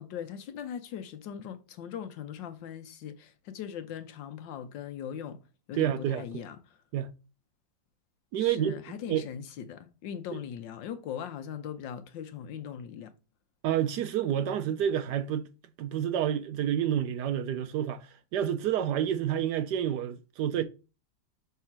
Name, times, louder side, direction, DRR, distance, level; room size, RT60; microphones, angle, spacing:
voice 1, 0.0-5.4 5.7-6.8 8.4-13.1, left 8 dB, 75° left, 1.4 m, -40 dB
voice 2, 5.8-6.4 6.9-7.1 8.3-8.8 9.1-9.3 10.3-10.4 13.6-15.5 15.8-20.6, right 10 dB, 70° right, 1.1 m, -29 dB
5.7 x 3.5 x 5.8 m
omnidirectional pair, 2.1 m